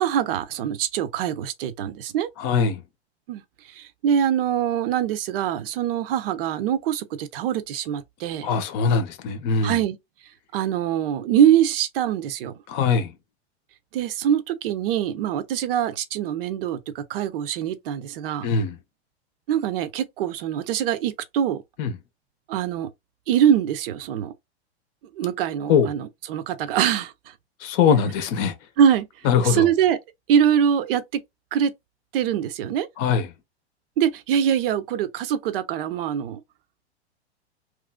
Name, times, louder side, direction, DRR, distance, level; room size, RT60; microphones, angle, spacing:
voice 1, 0.0-2.3 3.3-3.4 3.7-8.5 9.6-10.0 10.5-12.5 13.9-18.5 19.5-21.6 22.5-22.9 23.3-24.3 25.2-27.3 28.8-29.1 29.4-30.0 30.3-31.2 31.5-31.7 32.1-32.9 34.0-36.4, right 9 dB, 55° right, 0.6 m, -23 dB
voice 2, 2.4-2.8 8.4-9.8 12.7-13.1 18.4-18.8 21.8-21.9 25.7-25.9 27.6-28.5 29.2-29.7 33.0-33.3, left 6 dB, 40° left, 0.7 m, -21 dB
2.9 x 2.5 x 2.2 m
hypercardioid pair, 105°, 33 cm